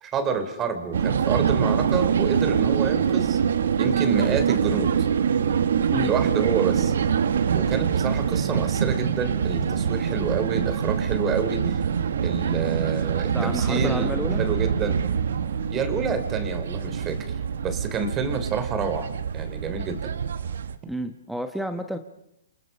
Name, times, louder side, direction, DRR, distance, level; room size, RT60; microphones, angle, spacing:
voice 1, 0.0-3.4 3.8-5.1 6.0-6.9 7.5-11.8 12.2-15.0 15.7-17.3 17.6-20.1, right 6 dB, 20° right, 9 dB, 3.1 m, -28 dB
sound 1, 0.9-20.8, right 7 dB, 75° right, 1.5 m, -24 dB
voice 2, 13.3-14.4 20.9-22.0, equal, ahead, 7 dB, 1.2 m, -30 dB
29.0 x 25.5 x 5.6 m, 0.81 s
hypercardioid pair, 150°, 0 cm